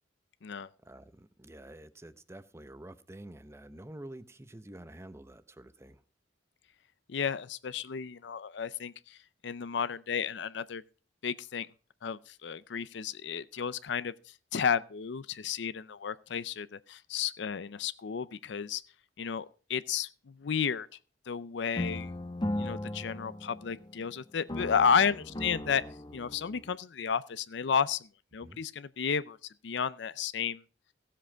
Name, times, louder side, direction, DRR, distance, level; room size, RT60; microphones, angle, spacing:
voice 1, 0.8-6.0 28.4-28.6, right 1 dB, 15° right, 0.7 m, -48 dB
voice 2, 7.1-10.8 11.2-11.7 12.0-18.8 19.2-20.9 21.3-22.1 22.5-25.8 26.1-29.4 29.6-30.6, left 6 dB, 65° left, 0.5 m, -32 dB
sound 1, 21.8-24.1 24.5-26.7, left 1 dB, 25° left, 0.8 m, -37 dB
16.0 x 7.6 x 4.5 m
head